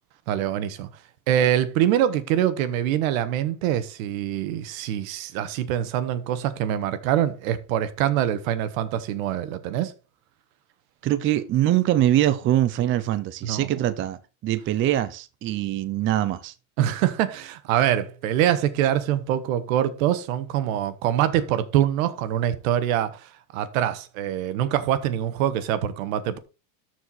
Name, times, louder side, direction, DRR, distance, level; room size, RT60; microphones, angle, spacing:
voice 1, 0.3-0.9 1.3-9.9 13.4-13.7 16.8-26.4, right 11 dB, 75° right, 1.4 m, -24 dB
voice 2, 11.0-16.5, right 13 dB, 30° right, 0.6 m, -23 dB
13.0 x 4.7 x 4.2 m
supercardioid pair, 135°, 41 cm